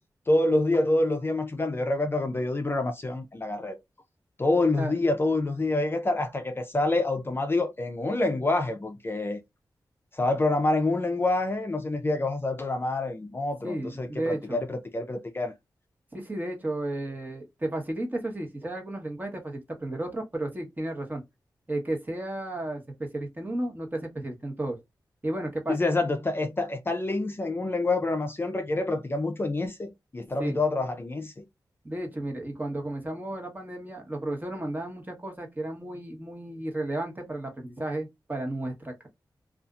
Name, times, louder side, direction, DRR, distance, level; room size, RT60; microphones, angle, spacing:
voice 1, 0.3-3.8 4.4-9.4 10.1-15.5 25.7-31.4, left 2 dB, 30° left, 0.5 m, -27 dB
voice 2, 13.6-14.6 16.1-21.2 21.7-24.8 25.2-25.8 30.4-30.6 31.8-39.1, right 1 dB, 25° right, 1.2 m, -33 dB
2.7 x 2.4 x 2.4 m
cardioid pair, 65°, 7 cm